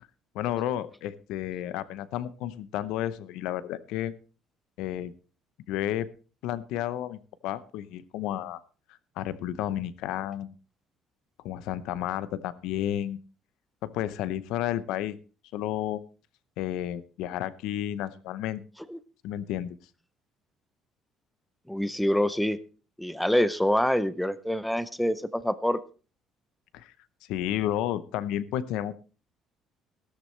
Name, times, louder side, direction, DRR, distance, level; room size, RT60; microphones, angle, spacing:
voice 1, 0.3-4.1 4.8-5.1 5.7-6.1 6.4-8.6 9.2-10.6 11.4-13.2 13.8-15.2 15.5-16.0 16.6-18.6 19.2-19.8 26.7-26.9 27.3-29.0, left 12 dB, 85° left, 16 dB, 0.8 m, -31 dB
voice 2, 21.7-22.6 23.0-25.8, equal, ahead, 15 dB, 0.5 m, -26 dB
15.5 x 13.0 x 3.2 m, 0.35 s
cardioid pair, 165°, 0 cm